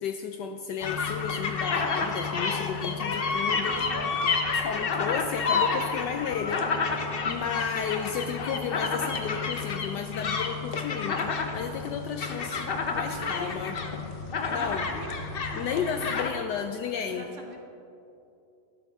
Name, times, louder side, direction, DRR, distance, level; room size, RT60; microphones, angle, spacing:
voice 1, 0.0-3.8 4.6-6.7 7.2-13.8 14.4-14.9 15.6-17.3, left 7 dB, 75° left, 6 dB, 1.0 m, -33 dB
sound 1, 0.8-16.3, left 4 dB, 90° left, 0.5 m, -30 dB
voice 2, 3.6-4.2 13.0-13.6 14.5-15.1 15.5-16.1 17.1-17.6, right 1 dB, 45° right, 1 dB, 1.1 m, -42 dB
12.5 x 12.5 x 3.5 m, 2.8 s
omnidirectional pair, 2.2 m